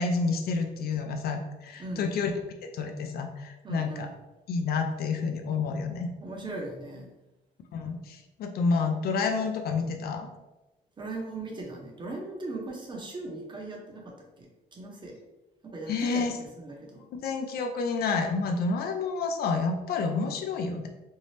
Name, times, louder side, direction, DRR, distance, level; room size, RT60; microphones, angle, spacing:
voice 1, 0.0-2.3 2.6-4.1 4.5-6.1 7.7-10.3 15.9-16.4 17.2-20.9, left 4 dB, 65° left, 5 dB, 0.4 m, -29 dB
voice 2, 3.6-4.2 6.2-7.1 11.0-15.2 15.6-17.0, right 2 dB, 25° right, 0 dB, 0.7 m, -39 dB
2.7 x 2.0 x 3.1 m, 1.0 s
cardioid pair, 105°, 17 cm